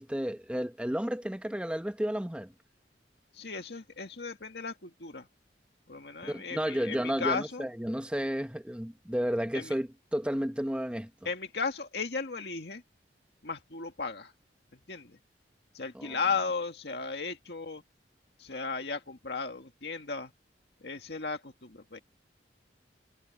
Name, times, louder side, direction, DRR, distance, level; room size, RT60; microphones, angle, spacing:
voice 1, 0.0-2.5 6.2-11.1 15.9-16.2, equal, 5° right, 1.0 m, -32 dB
voice 2, 3.3-5.3 5.9-7.7 9.5-9.7 11.2-12.8 13.4-14.3 14.7-15.2 15.7-17.8 18.4-20.3 20.8-22.0, left 4 dB, 65° left, 2.0 m, -35 dB
head